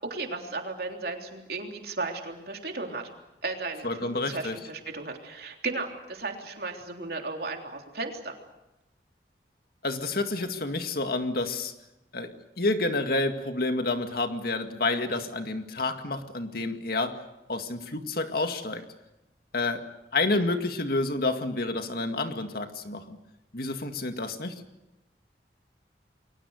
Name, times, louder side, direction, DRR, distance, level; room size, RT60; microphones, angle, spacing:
voice 1, 0.0-3.1 3.4-8.4, right 3 dB, 60° right, 2 dB, 3.5 m, -35 dB
voice 2, 3.8-4.6 9.8-11.7 12.1-17.2 17.5-18.8 19.5-19.8 20.1-23.2 23.5-24.5, left 2 dB, 60° left, 6 dB, 2.1 m, -29 dB
29.5 x 22.5 x 6.6 m, 0.96 s
head